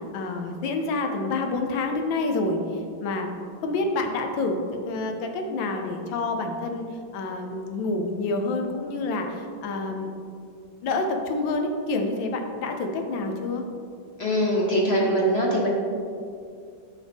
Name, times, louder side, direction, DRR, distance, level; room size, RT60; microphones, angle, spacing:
voice 1, 0.1-3.3 3.6-6.9 7.1-10.1 10.8-13.6, left 2 dB, 75° left, 4 dB, 1.5 m, -28 dB
voice 2, 14.2-15.7, equal, 50° left, -2 dB, 0.7 m, -22 dB
9.1 x 5.1 x 3.5 m, 2.4 s
omnidirectional pair, 2.2 m